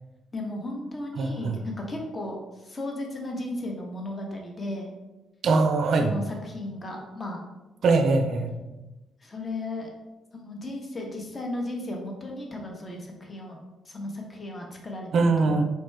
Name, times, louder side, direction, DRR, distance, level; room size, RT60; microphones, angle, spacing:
voice 1, 0.3-4.9 6.0-7.4 9.2-9.9 10.3-13.6 13.8-15.6, left 1 dB, 30° left, 1 dB, 0.8 m, -35 dB
voice 2, 1.2-1.6 5.4-6.1 7.8-8.5 15.1-15.6, right 3 dB, 65° right, 6 dB, 0.4 m, -22 dB
4.4 x 2.2 x 3.2 m, 1.1 s
cardioid pair, 90°, 0 cm